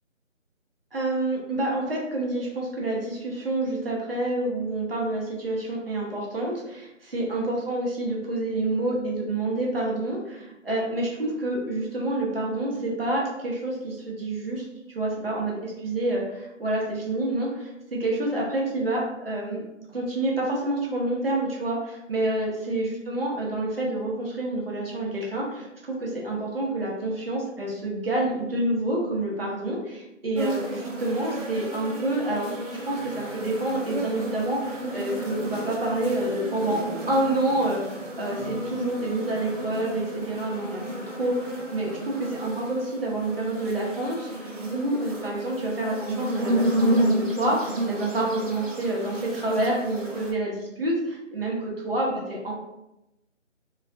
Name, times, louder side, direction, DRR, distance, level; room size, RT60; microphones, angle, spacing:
voice 1, 0.9-19.6 19.9-36.8 37.1-42.1 42.4-52.5, right 1 dB, 50° right, -4 dB, 0.8 m, -28 dB
sound 1, 30.4-50.3, right 1 dB, 75° right, 0.8 m, -31 dB
2.4 x 2.2 x 2.4 m, 0.91 s
figure-of-eight pair, 170°, 38 cm